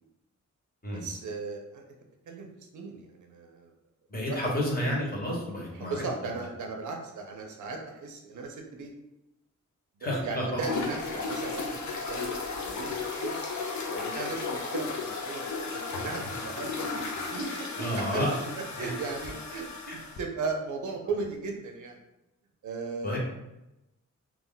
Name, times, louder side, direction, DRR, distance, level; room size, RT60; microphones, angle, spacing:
voice 1, 0.9-1.8 2.3-2.5 2.7-3.7 4.3-4.4 5.7-8.9 10.2-13.4 13.9-18.3 18.8-22.0 22.6-23.2, right 4 dB, 90° right, 2 dB, 0.5 m, -37 dB
voice 2, 4.1-6.0 10.0-10.6 17.8-18.3 18.8-18.9 23.0-23.2, left 1 dB, 30° left, -4 dB, 1.0 m, -30 dB
sound 1, 10.6-20.2, left 4 dB, 75° left, 0.5 m, -34 dB
2.3 x 2.1 x 3.7 m, 0.93 s
wide cardioid pair, 105°, 29 cm